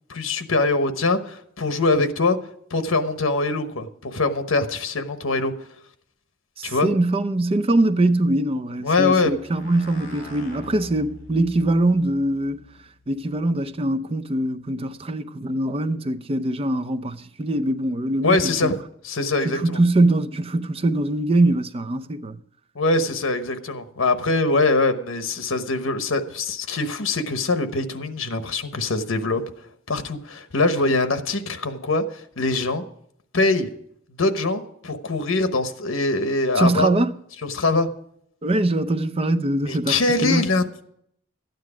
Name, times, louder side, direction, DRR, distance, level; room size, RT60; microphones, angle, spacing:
voice 1, 0.1-2.4 2.7-5.5 6.6-6.9 8.8-9.3 18.2-18.8 19.0-19.8 22.7-29.4 29.9-32.8 33.3-33.7 34.1-36.9 37.4-37.9 39.6-40.8, left 3 dB, 75° left, 1.1 m, -23 dB
voice 2, 6.6-12.6 13.1-18.7 19.4-22.4 36.6-37.1 38.4-40.4, right 1 dB, 30° right, 0.5 m, -22 dB
sound 1, 9.2-13.9, left 2 dB, 40° left, 5.4 m, -45 dB
13.0 x 9.4 x 5.0 m
head